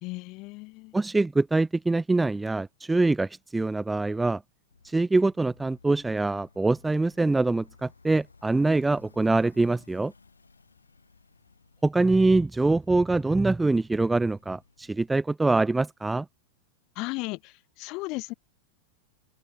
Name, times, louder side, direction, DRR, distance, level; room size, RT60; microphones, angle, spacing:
voice 1, 0.0-0.9 17.0-18.3, left 24 dB, 40° left, 3.5 m, -35 dB
voice 2, 0.9-4.4 4.8-10.1 11.8-16.3, right 2 dB, 10° right, 0.6 m, -24 dB
sound 1, 4.7-15.1, left 4 dB, 75° left, 4.9 m, -58 dB
open air
figure-of-eight pair, 90°, 0 cm